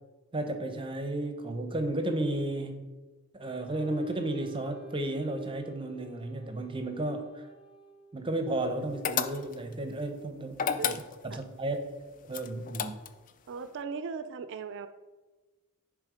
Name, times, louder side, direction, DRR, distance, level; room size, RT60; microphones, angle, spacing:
voice 1, 0.3-2.9 3.3-7.5 8.1-10.9 11.2-11.8 12.3-13.0, right 1 dB, 25° right, 6 dB, 0.7 m, -33 dB
Wind instrument woodwind instrument, 3.4-8.5, right 2 dB, 20° left, 1.3 m, -52 dB
sound 1, 9.0-9.7 10.5-11.4 12.3-13.3, left 8 dB, 35° left, 0.4 m, -31 dB
voice 2, 13.5-14.9, right 5 dB, 55° right, 11 dB, 0.4 m, -38 dB
10.5 x 3.5 x 5.0 m, 1.2 s
head